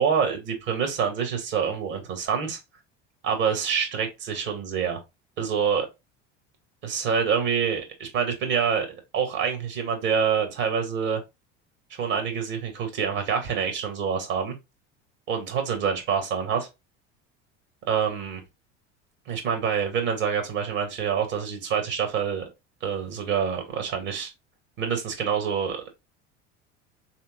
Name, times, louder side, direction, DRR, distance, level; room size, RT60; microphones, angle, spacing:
voice 1, 0.0-2.6 3.2-5.0 5.4-5.9 6.8-11.2 12.0-14.6 15.3-16.7 17.9-18.4 19.3-22.4 22.8-24.3 24.8-25.8, right 7 dB, 65° right, 2.2 m, -26 dB
4.4 x 3.6 x 2.5 m
hypercardioid pair, 75°, 36 cm